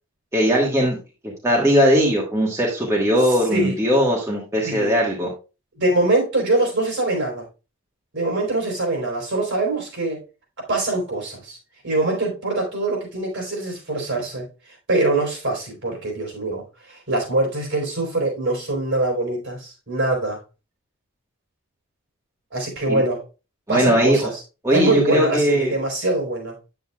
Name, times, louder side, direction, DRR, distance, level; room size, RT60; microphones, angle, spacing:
voice 1, 0.3-1.0 1.2-5.3 22.9-23.0 23.7-24.3 24.6-25.7, equal, 15° right, -3 dB, 1.5 m, -19 dB
voice 2, 5.8-7.4 8.1-10.2 10.7-11.6 11.8-14.5 14.9-20.4 22.5-23.2 23.7-24.4 24.7-26.6, right 2 dB, 55° right, 0 dB, 4.2 m, -23 dB
9.2 x 8.0 x 2.3 m, 0.30 s
head